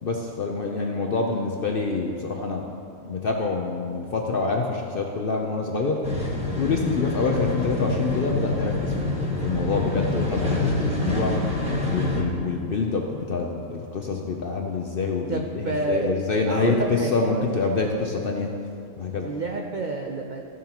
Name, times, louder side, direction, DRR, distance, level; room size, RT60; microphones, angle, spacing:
voice 1, 0.0-2.7 3.0-6.0 6.6-11.3 11.8-18.5 19.0-19.3, left 4 dB, 60° left, 1 dB, 0.6 m, -26 dB
sound 1, 6.0-12.2, left 2 dB, 5° right, 1.4 m, -26 dB
voice 2, 15.3-16.1 16.4-17.4 19.2-20.5, right 3 dB, 70° right, 1 dB, 0.4 m, -29 dB
14.0 x 7.3 x 2.9 m, 2.5 s
omnidirectional pair, 1.6 m